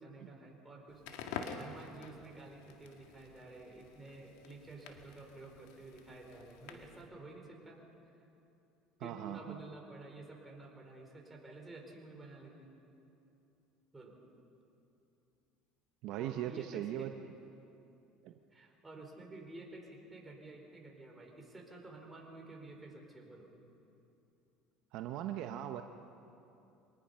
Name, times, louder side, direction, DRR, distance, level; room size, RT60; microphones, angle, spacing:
voice 1, 0.0-7.8 9.0-12.7 13.9-14.2 16.2-17.1 18.5-23.5, right 2 dB, 15° right, 0 dB, 4.6 m, -51 dB
Crackle, 0.9-7.1, left 6 dB, 80° left, 1.9 m, -48 dB
voice 2, 9.0-9.6 16.0-17.1 18.2-18.3 24.9-25.8, right 12 dB, 65° right, 6 dB, 0.9 m, -39 dB
24.5 x 19.0 x 5.7 m, 2.8 s
supercardioid pair, 100°, 0 cm